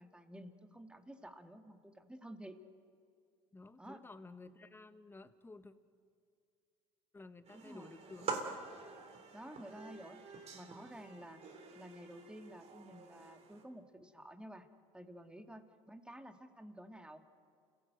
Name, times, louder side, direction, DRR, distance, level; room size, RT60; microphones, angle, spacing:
voice 1, 0.0-2.6 3.8-4.1 7.5-7.9 9.3-10.2 10.5-11.4 11.8-14.7 14.9-17.2, right 1 dB, 5° right, 6 dB, 1.9 m, -52 dB
voice 2, 3.5-5.7 7.1-8.7, left 3 dB, 15° left, 10 dB, 1.3 m, -54 dB
sound 1, 7.4-13.6, right 4 dB, 50° right, 3.5 m, -46 dB
29.0 x 17.0 x 8.2 m, 2.3 s
supercardioid pair, 95°, 14 cm